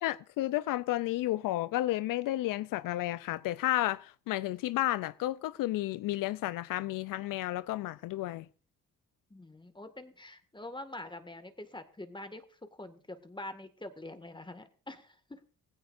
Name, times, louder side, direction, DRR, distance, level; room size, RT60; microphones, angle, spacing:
voice 1, 0.0-8.5, left 16 dB, 85° left, 0.5 m, -32 dB
voice 2, 9.3-15.4, left 1 dB, 15° left, 1.9 m, -45 dB
18.5 x 16.0 x 2.6 m
cardioid pair, 75°, 32 cm